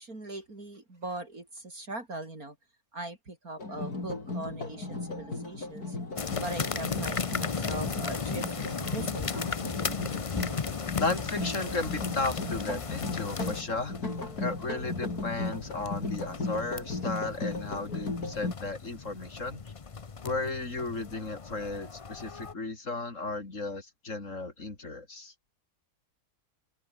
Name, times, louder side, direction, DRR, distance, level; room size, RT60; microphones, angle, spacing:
voice 1, 0.0-2.6 2.9-6.0 6.4-9.5, right 2 dB, 65° right, 5.9 m, -40 dB
sound 1, 3.6-18.5, left 3 dB, 75° left, 5.4 m, -36 dB
sound 2, 6.2-22.5, left 5 dB, 35° left, 0.6 m, -36 dB
voice 2, 11.0-14.0 14.4-19.7 20.2-25.3, left 3 dB, 55° left, 3.8 m, -34 dB
omnidirectional pair, 1.6 m